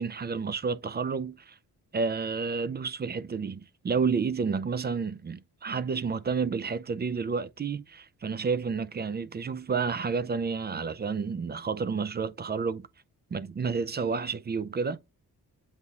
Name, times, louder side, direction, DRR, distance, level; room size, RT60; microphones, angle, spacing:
voice 1, 0.0-1.6 1.9-12.8 13.3-15.0, right 5 dB, 30° right, 0.4 m, -30 dB
8.0 x 2.8 x 2.3 m
cardioid pair, 80°, 38 cm